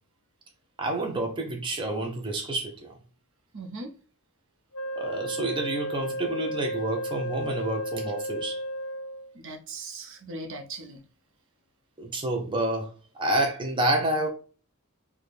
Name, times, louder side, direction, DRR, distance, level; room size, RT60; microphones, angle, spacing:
voice 1, 0.8-2.9 5.0-8.6 12.0-12.9 13.2-14.3, right 1 dB, 25° right, 0.5 m, -28 dB
voice 2, 3.5-3.9 9.3-11.0, right 2 dB, 60° right, 0.7 m, -39 dB
Wind instrument woodwind instrument, 4.7-9.4, equal, 75° left, 0.5 m, -33 dB
4.2 x 2.2 x 3.2 m
head